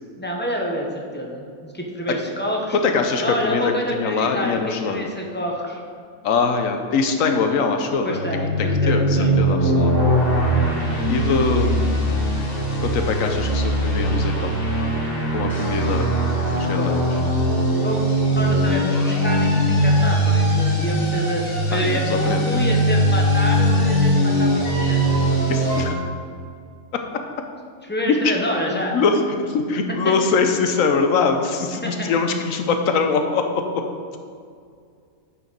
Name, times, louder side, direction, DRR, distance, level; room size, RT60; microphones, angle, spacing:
voice 1, 0.2-2.8 3.2-5.8 8.0-9.4 15.7-15.9 16.8-16.9 17.8-18.0 18.3-25.0 27.9-28.9 31.8-32.1, equal, 10° left, -1 dB, 0.8 m, -27 dB
voice 2, 2.7-5.0 6.2-9.0 9.4-9.9 11.1-12.2 12.8-14.5 15.3-16.1 16.5-17.0 21.7-22.6 25.5-25.9 28.1-28.3 28.6-33.8, left 4 dB, 70° left, 5 dB, 1.1 m, -22 dB
sound 1, 8.0-25.8, equal, 55° left, 2.2 m, -20 dB
9.0 x 4.6 x 5.2 m, 2.2 s
omnidirectional pair, 1.5 m